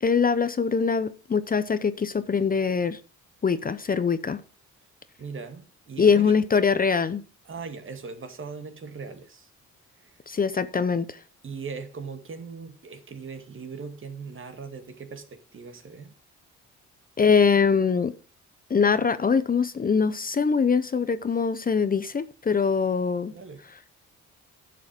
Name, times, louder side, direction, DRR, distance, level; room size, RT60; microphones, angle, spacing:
voice 1, 0.0-3.0 3.4-4.4 6.0-7.2 10.3-11.2 17.2-18.1 18.7-23.3, left 5 dB, 30° left, 0.8 m, -23 dB
voice 2, 5.2-6.4 7.5-9.5 10.0-10.2 11.4-16.1 23.3-23.6, right 5 dB, 40° right, 2.2 m, -39 dB
11.5 x 7.6 x 5.2 m
cardioid pair, 90°, 30 cm